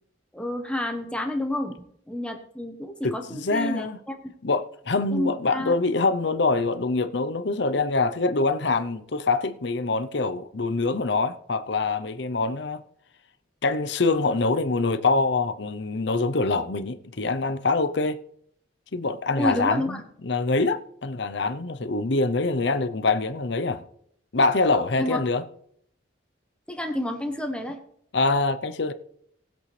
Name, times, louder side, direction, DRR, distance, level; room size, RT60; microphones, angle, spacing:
voice 1, 0.3-1.7 2.1-4.2 5.1-5.7 19.4-20.0 25.0-25.2 26.7-27.8, left 1 dB, 5° left, 1.1 m, -29 dB
voice 2, 3.0-4.0 4.4-12.8 13.6-18.2 18.9-23.8 24.3-25.4 28.1-28.9, left 3 dB, 60° left, 0.8 m, -25 dB
19.0 x 7.9 x 3.3 m
head